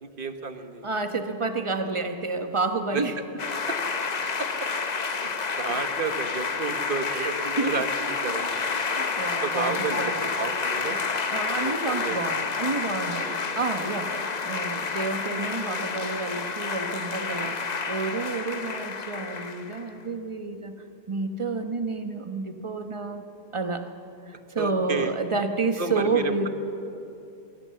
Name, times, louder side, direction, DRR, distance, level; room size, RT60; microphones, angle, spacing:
voice 1, 0.0-0.8 2.9-3.0 3.7-3.8 4.4-4.7 5.1-5.3 5.6-7.9 8.2-8.6 9.4-11.0 11.6-12.2 13.2-13.4 17.4-17.6 24.6-25.1 25.8-26.5, right 4 dB, 50° right, 8 dB, 1.3 m, -31 dB
voice 2, 0.8-3.1 7.1-7.7 8.6-10.3 11.3-14.1 14.4-20.7 21.1-23.2 23.5-23.9 24.3-26.5, right 3 dB, 25° right, 7 dB, 1.1 m, -30 dB
sound 1, 3.4-19.8, left 5 dB, 40° left, 0.9 m, -29 dB
22.5 x 17.0 x 7.7 m, 2.9 s
omnidirectional pair, 1.2 m